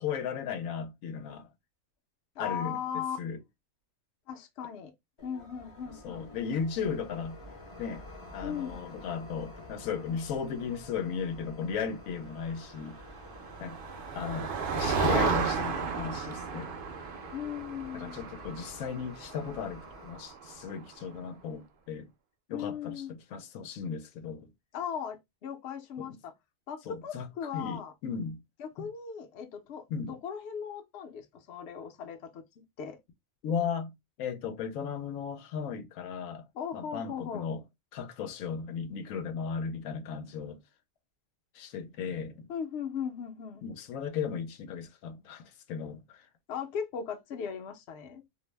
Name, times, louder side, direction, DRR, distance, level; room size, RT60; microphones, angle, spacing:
voice 1, 0.0-1.5 2.4-3.4 6.0-7.4 7.8-8.0 8.3-13.0 13.6-13.8 14.1-16.7 17.9-22.1 22.5-24.5 26.0-26.1 26.9-27.3 27.5-28.4 29.9-30.1 33.4-33.9 34.2-36.4 36.7-37.6 37.9-40.6 41.5-42.5 43.6-46.3, left 6 dB, 90° left, 1.0 m, -36 dB
voice 2, 2.4-3.2 4.3-4.9 5.2-6.3 8.4-8.8 17.3-18.3 22.5-23.1 24.7-26.3 26.7-27.9 28.6-32.4 32.8-33.0 36.5-37.5 42.5-43.6 46.5-48.2, left 7 dB, 60° left, 0.8 m, -38 dB
sound 1, 5.2-20.2, left 2 dB, 30° left, 0.6 m, -50 dB
Motor vehicle (road), 13.0-20.8, right 5 dB, 60° right, 0.6 m, -33 dB
2.6 x 2.0 x 3.1 m
omnidirectional pair, 1.4 m